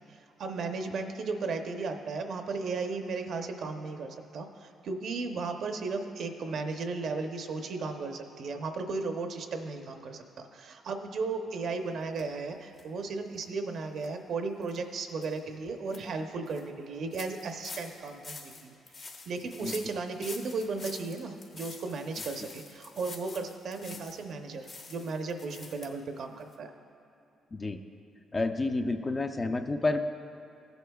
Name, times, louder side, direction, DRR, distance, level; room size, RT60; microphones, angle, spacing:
voice 1, 0.4-18.7 19.3-26.7, right 4 dB, 65° right, 5 dB, 0.7 m, -35 dB
sound 1, 12.2-12.3 12.7-12.8 13.3-13.4 14.0-14.1 14.6-14.8 15.2-15.3 15.7-16.0 16.5-16.6 17.1-24.3 24.6-25.9 26.2-26.3 26.5-26.6, left 3 dB, 45° left, 1.1 m, -46 dB
voice 2, 28.3-30.0, left 2 dB, 30° left, 7 dB, 0.5 m, -29 dB
15.5 x 8.0 x 2.3 m, 2.7 s
cardioid pair, 90°, 0 cm